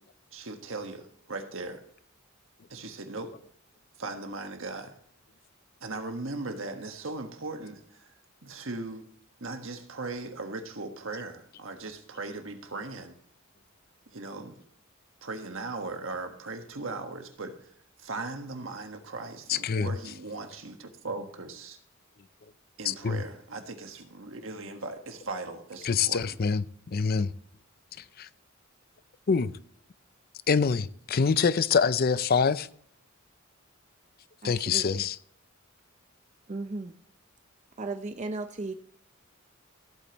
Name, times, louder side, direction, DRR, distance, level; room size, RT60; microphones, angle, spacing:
voice 1, 0.3-1.8 2.7-3.3 4.0-4.9 5.8-8.1 8.4-9.1 9.4-13.1 14.1-14.6 15.2-17.7 18.0-21.8 22.8-26.4, right 3 dB, 65° right, 1.5 m, -38 dB
voice 2, 19.5-19.9 22.8-23.2 25.8-27.3 28.0-28.3 29.3-29.5 30.5-32.7 34.4-35.2, left 5 dB, 45° left, 0.5 m, -25 dB
voice 3, 34.4-35.0 36.5-36.9 37.8-38.7, right 3 dB, 35° right, 0.6 m, -35 dB
15.5 x 8.6 x 3.0 m
head